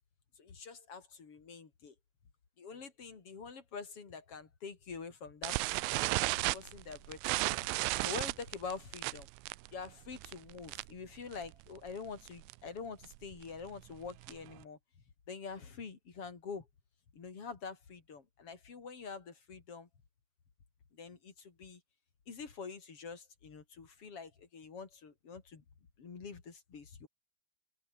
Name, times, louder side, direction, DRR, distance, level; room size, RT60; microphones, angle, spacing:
voice 1, 0.4-1.9 2.6-7.2 7.5-9.3 9.7-14.8 15.3-16.7 17.1-19.9 20.9-21.8 22.3-25.6 26.0-27.1, left 5 dB, 35° left, 3.4 m, -46 dB
sound 1, 5.4-11.1 11.3-11.6 11.9-12.0 12.3-12.5 13.0-14.6, right 25 dB, 90° right, 3.0 m, -34 dB
open air
omnidirectional pair, 5.4 m